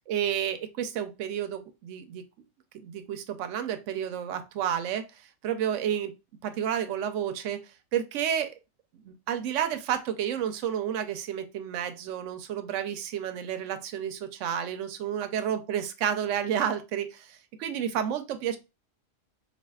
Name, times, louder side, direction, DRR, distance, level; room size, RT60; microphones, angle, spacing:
voice 1, 0.1-2.2 2.7-5.1 5.4-6.1 6.4-8.5 9.0-18.6, right 9 dB, 75° right, 10 dB, 0.9 m, -31 dB
4.2 x 2.5 x 2.3 m, 0.27 s
omnidirectional pair, 1.3 m